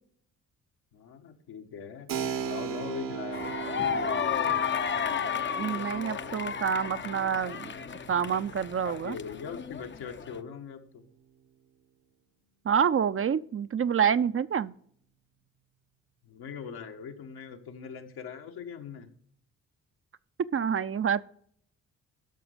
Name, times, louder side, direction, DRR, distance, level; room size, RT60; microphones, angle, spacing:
voice 1, 0.9-2.1 2.4-4.6 8.8-11.0 16.2-19.1, left 7 dB, 75° left, 4 dB, 1.5 m, -41 dB
Keyboard (musical), 2.1-10.5, right 8 dB, 60° right, 1.1 m, -39 dB
sound 1, 3.3-10.4, left 8 dB, 30° left, 0.7 m, -33 dB
voice 2, 5.6-7.7 8.1-9.2 12.6-14.7 20.5-21.3, right 7 dB, 35° right, 14 dB, 0.6 m, -27 dB
12.0 x 6.1 x 5.1 m, 0.63 s
hypercardioid pair, 45°, 38 cm